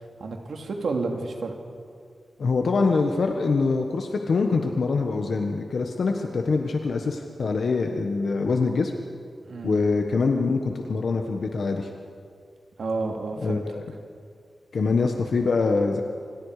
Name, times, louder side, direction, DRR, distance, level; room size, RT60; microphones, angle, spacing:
voice 1, 0.2-1.5 9.5-9.8 12.8-13.6, right 3 dB, 80° right, 2 dB, 2.9 m, -30 dB
voice 2, 2.4-8.9 9.6-11.9 13.4-13.8 14.7-16.0, left 4 dB, 65° left, 3 dB, 1.5 m, -24 dB
28.0 x 26.5 x 5.1 m, 2.2 s
wide cardioid pair, 175°, 0 cm